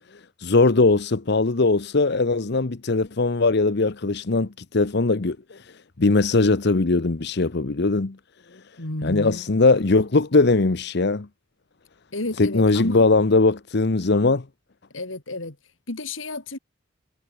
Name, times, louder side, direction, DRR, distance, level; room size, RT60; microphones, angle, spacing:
voice 1, 0.4-5.7 6.0-8.2 9.0-11.3 12.4-14.4, left 3 dB, 60° left, 0.9 m, -20 dB
voice 2, 8.8-9.5 12.1-13.1 14.9-15.6 15.9-16.6, left 2 dB, 85° left, 3.3 m, -31 dB
head